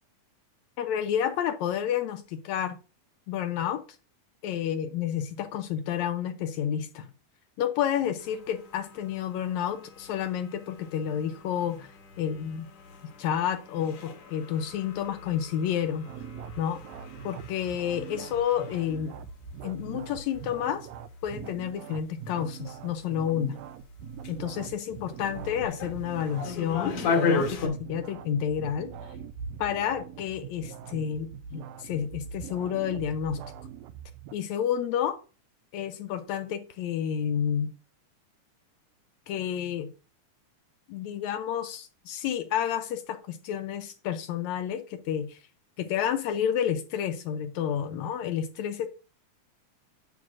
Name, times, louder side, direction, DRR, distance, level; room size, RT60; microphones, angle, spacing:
voice 1, 0.8-2.8 3.3-3.8 4.4-7.1 7.6-12.7 13.2-16.1 16.6-16.8 17.2-19.1 19.6-20.9 21.2-23.6 24.3-29.1 29.6-33.4 34.3-35.2 35.7-37.7 39.3-39.9 40.9-45.4 45.8-48.9, left 9 dB, 75° left, 1.8 m, -30 dB
sound 1, 8.2-27.7, left 5 dB, 55° left, 1.9 m, -37 dB
sound 2, 16.1-34.3, right 7 dB, 85° right, 1.4 m, -42 dB
9.3 x 7.3 x 2.5 m
omnidirectional pair, 3.5 m